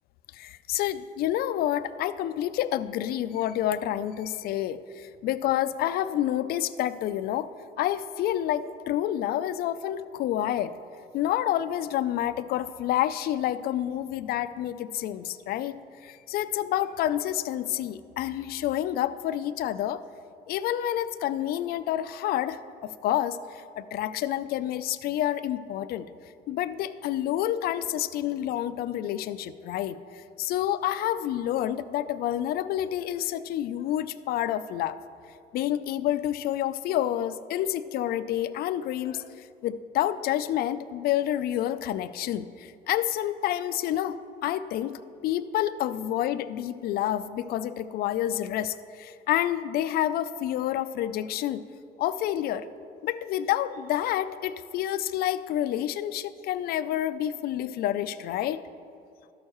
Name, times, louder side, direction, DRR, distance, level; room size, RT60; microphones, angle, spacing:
voice 1, 0.3-7.5 7.8-10.7 11.1-15.8 16.0-20.0 20.5-22.6 23.0-23.4 23.8-26.1 26.5-35.0 35.5-39.3 39.6-44.2 44.4-51.6 52.0-52.7 53.0-58.6, left 12 dB, 65° left, 14 dB, 0.4 m, -28 dB
12.5 x 6.4 x 3.0 m, 2.5 s
cardioid pair, 110°, 17 cm